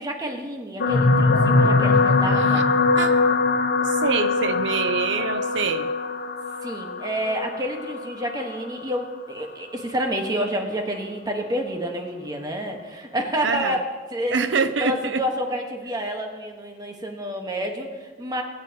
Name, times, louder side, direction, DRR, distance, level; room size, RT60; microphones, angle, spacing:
voice 1, 0.0-2.6 6.6-13.8 14.1-14.4 14.8-18.4, equal, 20° right, 2 dB, 1.4 m, -29 dB
sound 1, 0.8-9.2 10.0-10.2 10.5-10.6, left 3 dB, 60° left, 1.2 m, -22 dB
voice 2, 3.8-5.9 13.4-13.8 14.3-15.2, right 5 dB, 90° right, 10 dB, 0.6 m, -25 dB
21.0 x 9.5 x 3.0 m, 1.4 s
head